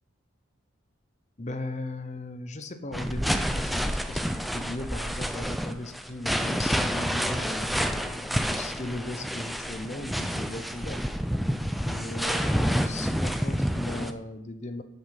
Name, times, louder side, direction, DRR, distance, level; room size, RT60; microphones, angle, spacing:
voice 1, 1.4-11.0 11.8-14.8, left 2 dB, 35° left, 9 dB, 0.8 m, -37 dB
sound 1, 2.9-14.1, equal, ahead, 0.5 m, -29 dB
13.5 x 5.5 x 5.8 m, 0.83 s
head